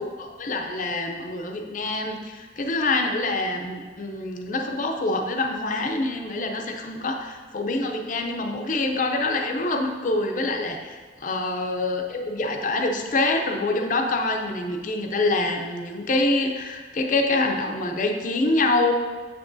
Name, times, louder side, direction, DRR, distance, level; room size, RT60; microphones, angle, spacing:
voice 1, 0.0-18.9, left 2 dB, 45° left, 3 dB, 0.5 m, -26 dB
6.9 x 5.9 x 2.6 m, 1.5 s
head